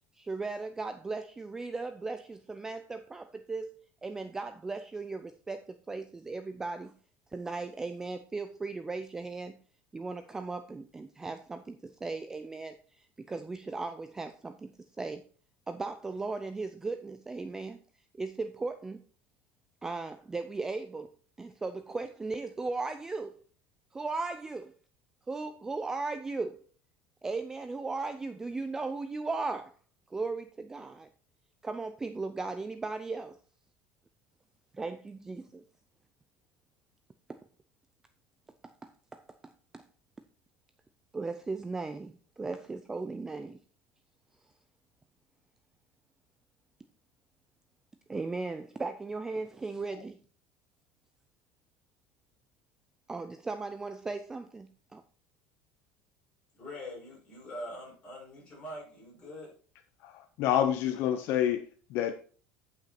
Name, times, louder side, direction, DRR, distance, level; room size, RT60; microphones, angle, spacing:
voice 1, 0.2-6.9 7.3-9.6 9.9-15.2 15.7-17.8 18.2-19.0 19.8-23.3 23.9-24.7 25.3-26.6 27.2-29.7 30.1-31.1 31.6-33.4 34.7-35.6 37.3-37.4 38.6-39.8 41.1-43.6 48.1-50.2 53.1-55.0, right 3 dB, 10° right, 9 dB, 0.4 m, -37 dB
voice 2, 56.6-59.5, left 1 dB, 20° left, -5 dB, 5.6 m, -43 dB
voice 3, 60.0-62.1, left 10 dB, 50° left, 8 dB, 0.7 m, -28 dB
10.0 x 5.9 x 4.3 m, 0.41 s
cardioid pair, 170°, 5 cm